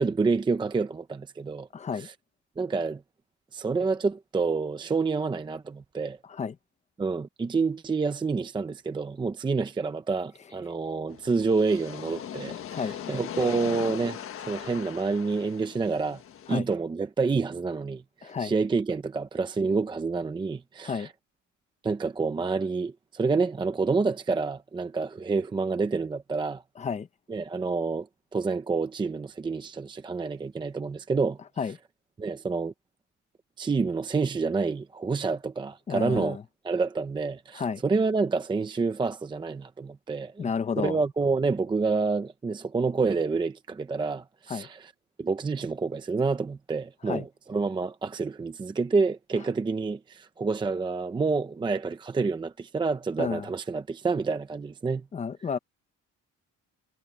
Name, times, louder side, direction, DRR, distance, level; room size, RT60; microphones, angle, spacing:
voice 1, 0.0-1.7 2.0-2.1 2.6-3.0 3.5-6.2 7.0-14.2 14.5-16.2 16.5-21.1 21.8-26.6 27.3-28.1 28.3-31.4 32.2-32.7 33.6-36.4 36.6-40.5 40.8-44.9 45.2-55.0, right 4 dB, 15° right, 0.6 m, -28 dB
voice 2, 1.7-2.1 6.3-6.5 12.7-13.0 16.5-16.7 18.2-18.5 20.8-21.1 26.8-27.1 31.6-31.8 35.9-36.4 37.5-37.8 40.4-41.0 44.5-44.7 47.1-47.3 53.2-53.5 55.1-55.6, left 6 dB, 25° left, 0.9 m, -31 dB
sound 1, 11.1-16.6, left 9 dB, 45° left, 1.5 m, -39 dB
cardioid pair, 180°, 30 cm